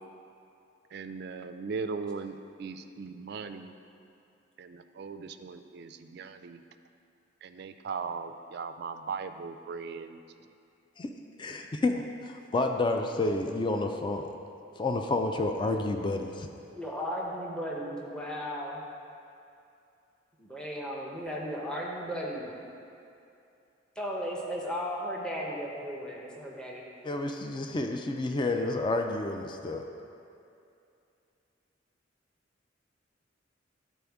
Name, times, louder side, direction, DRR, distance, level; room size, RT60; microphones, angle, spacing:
voice 1, 0.9-3.7 4.6-6.6 7.4-10.2, right 5 dB, 55° right, 8 dB, 0.3 m, -38 dB
voice 2, 11.4-14.3 14.8-16.5 27.0-29.8, left 2 dB, 25° left, 4 dB, 0.3 m, -30 dB
voice 3, 16.7-18.8 20.4-22.5 24.0-26.8, equal, 5° left, -3 dB, 0.7 m, -35 dB
11.0 x 4.2 x 3.5 m, 2.6 s
head